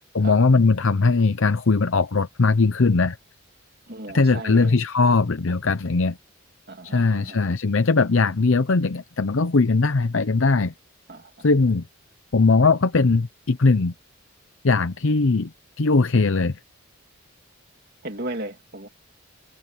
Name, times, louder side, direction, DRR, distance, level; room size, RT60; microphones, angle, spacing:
voice 1, 0.1-3.2 4.1-6.2 6.8-10.7 11.4-11.8 12.3-13.9 14.6-15.5 15.8-16.6, left 3 dB, 65° left, 0.7 m, -20 dB
voice 2, 3.9-4.8 6.7-7.4 11.1-11.5 18.0-18.9, right 1 dB, 45° right, 2.6 m, -35 dB
head